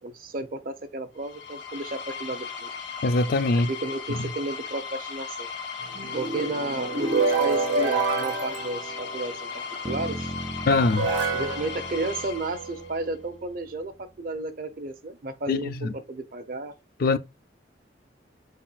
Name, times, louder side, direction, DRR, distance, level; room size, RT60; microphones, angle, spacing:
voice 1, 0.0-2.7 3.5-5.5 6.1-10.3 11.3-16.7, right 2 dB, 50° right, 0.7 m, -33 dB
sound 1, 1.2-13.0, left 6 dB, 85° left, 1.5 m, -37 dB
voice 2, 3.0-3.7 10.7-11.1 15.5-15.9 17.0-17.2, left 3 dB, 55° left, 0.4 m, -22 dB
sound 2, 5.8-9.6 10.4-10.5 10.9-12.8, right 3 dB, 90° right, 1.4 m, -28 dB
sound 3, 9.9-13.8, right 1 dB, 15° right, 0.3 m, -38 dB
4.5 x 4.2 x 2.4 m
head